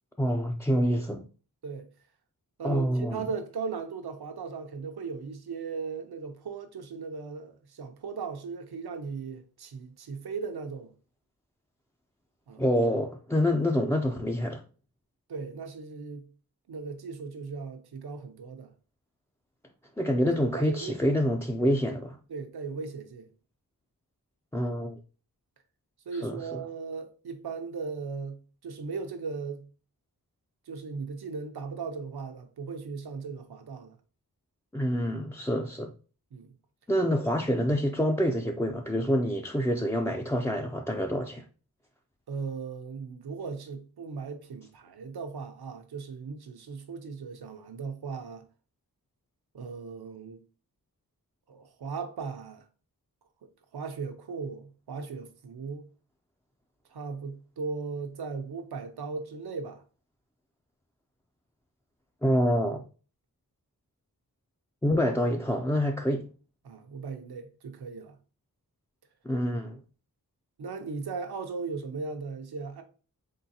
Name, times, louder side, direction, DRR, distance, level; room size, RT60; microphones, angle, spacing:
voice 1, 0.2-1.2 2.6-3.2 12.6-14.6 20.0-22.2 24.5-25.0 26.1-26.4 34.7-35.9 36.9-41.4 62.2-62.8 64.8-66.2 69.2-69.8, equal, 10° left, 0.3 m, -27 dB
voice 2, 2.6-10.9 12.5-12.6 15.3-16.3 16.7-18.7 20.5-21.2 22.3-23.3 26.1-29.6 30.7-33.9 36.3-36.5 42.3-48.4 49.5-50.4 51.5-52.6 53.7-55.9 56.9-59.8 66.6-68.2 70.6-72.8, right 5 dB, 90° right, 0.7 m, -37 dB
3.8 x 3.8 x 2.7 m
wide cardioid pair, 95°, 37 cm